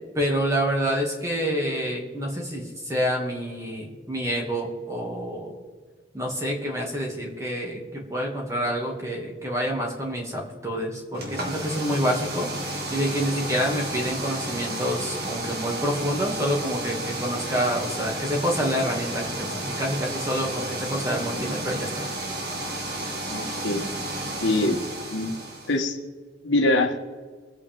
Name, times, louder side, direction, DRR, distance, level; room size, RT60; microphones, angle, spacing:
voice 1, 0.1-5.6 6.1-21.9 24.4-24.7, equal, 15° right, -1 dB, 2.5 m, -27 dB
sound 1, 11.1-25.8, right 1 dB, 55° right, 2.1 m, -32 dB
voice 2, 23.3-23.9 24.4-24.8 25.1-25.3 25.7-26.0 26.4-26.9, left 2 dB, 85° left, 4 dB, 1.6 m, -23 dB
24.0 x 8.4 x 3.7 m, 1.5 s
head